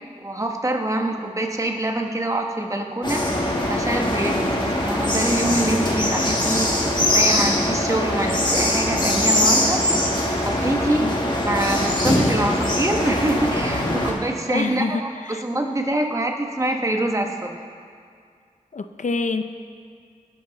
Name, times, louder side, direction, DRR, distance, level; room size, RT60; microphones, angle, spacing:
voice 1, 0.2-3.2 3.7-6.7 7.1-9.8 10.4-11.1 11.4-15.1 15.4-17.5, right 1 dB, 25° right, 2 dB, 1.3 m, -25 dB
sound 1, 3.0-14.1, left 1 dB, 35° left, 2.3 m, -22 dB
voice 2, 14.5-15.5 18.7-19.4, left 4 dB, 65° left, 8 dB, 0.7 m, -27 dB
19.5 x 11.0 x 4.1 m, 2.2 s
wide cardioid pair, 80°, 14 cm